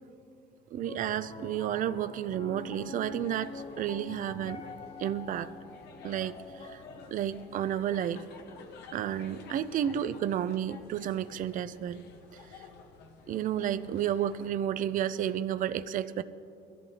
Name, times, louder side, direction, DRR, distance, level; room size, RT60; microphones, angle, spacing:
voice 1, 0.7-4.6 5.0-5.5 6.0-6.8 7.1-8.2 8.9-12.0 13.3-16.2, right 10 dB, 50° right, 13 dB, 0.5 m, -31 dB
Piano, 0.8-11.1, left 4 dB, 30° left, 0.6 m, -47 dB
sound 1, 2.6-14.5, left 4 dB, 80° left, 1.2 m, -52 dB
22.5 x 13.5 x 2.9 m, 2.8 s
cardioid pair, 110°, 17 cm